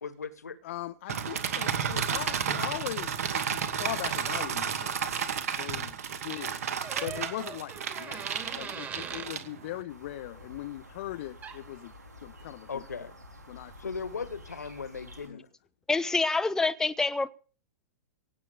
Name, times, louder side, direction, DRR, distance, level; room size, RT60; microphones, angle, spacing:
voice 1, 0.0-0.6 12.7-13.1 13.8-15.5, left 5 dB, 75° left, 1.5 m, -37 dB
voice 2, 0.6-5.0 5.6-6.6 7.0-11.9 12.2-12.7 13.5-13.7 15.3-15.4, left 15 dB, 50° left, 0.7 m, -39 dB
sound 1, 1.1-9.8, right 7 dB, 65° right, 2.5 m, -32 dB
sound 2, 6.8-9.3 11.4-11.6, right 6 dB, 20° right, 2.4 m, -41 dB
sound 3, 9.9-15.3, left 1 dB, 85° right, 4.4 m, -50 dB
voice 3, 15.9-17.3, left 3 dB, 5° left, 0.6 m, -26 dB
17.5 x 8.3 x 6.9 m
figure-of-eight pair, 100°, 9 cm